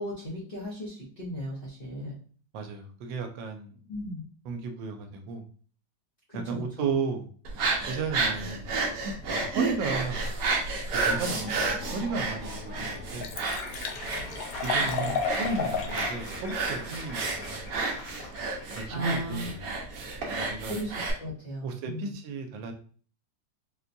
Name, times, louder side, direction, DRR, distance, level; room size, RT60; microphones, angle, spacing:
voice 1, 0.0-2.1 3.9-4.2 6.3-6.9 14.8-15.2 18.9-19.5 20.6-20.9 21.2-22.1, equal, 40° left, -7 dB, 0.8 m, -36 dB
voice 2, 2.5-3.9 4.4-5.4 6.3-7.3 7.9-8.7 9.3-10.3 11.0-13.3 14.6-17.6 18.8-19.6 20.3-20.8 21.6-22.7, right 4 dB, 85° right, 5 dB, 1.3 m, -34 dB
sound 1, 7.4-21.1, right 3 dB, 65° right, 1.0 m, -31 dB
Laughter / Applause, 10.8-19.2, left 2 dB, 55° left, 1.2 m, -43 dB
Liquid, 12.0-12.1 12.6-12.7 12.9-16.1 16.5-16.6, left 6 dB, 75° left, 1.2 m, -33 dB
4.1 x 2.2 x 2.6 m, 0.43 s
omnidirectional pair, 2.0 m